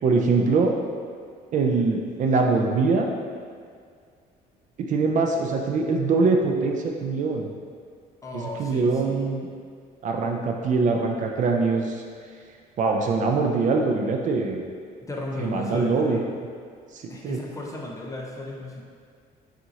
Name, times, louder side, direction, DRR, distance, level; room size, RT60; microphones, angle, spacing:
voice 1, 0.0-0.7 1.5-3.1 4.8-7.5 8.3-9.5 10.0-12.0 12.8-14.6 15.4-16.2 16.9-17.4, right 4 dB, 50° right, 2 dB, 0.4 m, -23 dB
voice 2, 8.2-9.2 15.1-16.3 17.1-18.8, left 1 dB, 20° left, -2 dB, 0.6 m, -35 dB
5.7 x 2.5 x 2.8 m, 2.1 s
cardioid pair, 110°, 17 cm